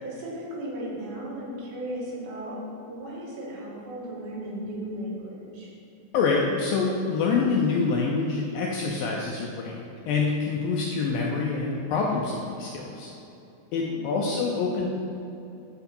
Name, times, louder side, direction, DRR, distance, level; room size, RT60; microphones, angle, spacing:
voice 1, 0.0-2.6 2.8-5.7 13.8-14.0, right 1 dB, 75° right, -5 dB, 3.7 m, -36 dB
voice 2, 6.1-13.1 13.7-14.9, left 4 dB, 85° left, -2 dB, 2.1 m, -26 dB
10.5 x 4.7 x 5.3 m, 2.7 s
omnidirectional pair, 4.8 m